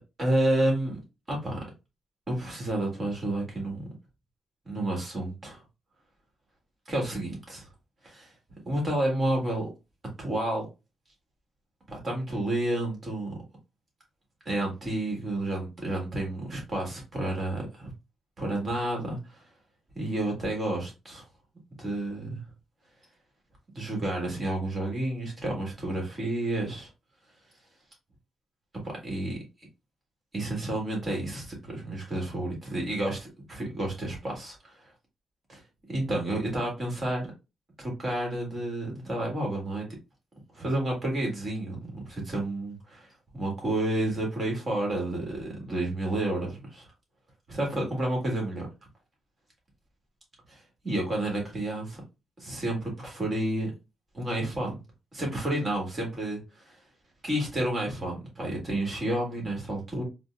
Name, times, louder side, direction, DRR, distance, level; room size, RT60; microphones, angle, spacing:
voice 1, 0.2-1.0 1.3-1.7 2.3-3.9 4.6-5.6 6.8-7.7 8.0-8.3 8.6-9.7 10.2-10.7 11.9-13.3 14.4-17.9 18.4-19.4 19.9-21.2 21.8-22.4 23.7-26.9 28.8-29.4 30.3-34.7 35.5-35.6 35.9-37.3 37.8-39.8 40.5-46.9 47.5-48.7 50.5-52.0 52.4-53.7 54.1-54.7 55.1-56.7 57.2-60.0, right 1 dB, 30° right, 1.6 m, -30 dB
4.2 x 2.1 x 2.3 m
cardioid pair, 125°, 0 cm